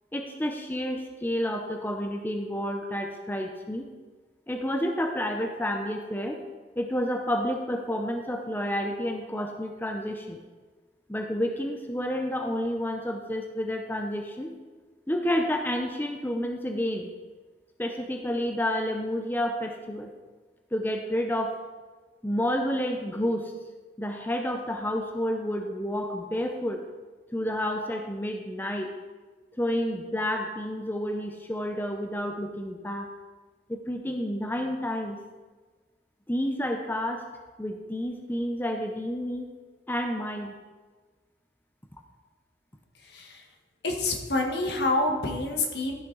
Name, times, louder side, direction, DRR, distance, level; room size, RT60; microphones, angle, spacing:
voice 1, 0.1-3.8 4.5-6.4 6.8-10.4 11.1-14.5 15.1-17.1 17.8-20.1 20.7-21.6 22.2-23.5 24.0-26.8 27.3-28.9 29.6-33.1 33.7-35.2 36.3-37.3 37.6-39.5 39.9-40.5, equal, 10° left, 4 dB, 0.6 m, -30 dB
voice 2, 43.0-43.4 43.8-45.9, left 2 dB, 70° left, 2 dB, 1.4 m, -27 dB
13.0 x 6.3 x 3.9 m, 1.3 s
head